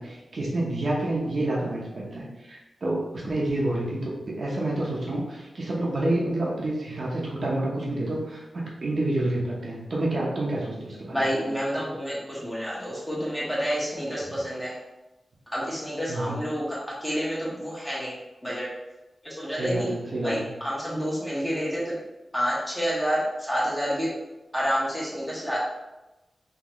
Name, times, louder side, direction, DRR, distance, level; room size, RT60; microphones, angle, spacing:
voice 1, 0.0-11.2 16.1-16.4 19.5-20.5, right 1 dB, 55° right, -3 dB, 0.9 m, -28 dB
voice 2, 11.1-14.8 15.5-18.2 18.4-18.7 19.2-19.9 20.2-21.9 22.3-24.1 24.5-25.6, equal, 5° left, -6 dB, 1.3 m, -29 dB
3.9 x 3.1 x 3.1 m, 1.0 s
wide cardioid pair, 110°, 0 cm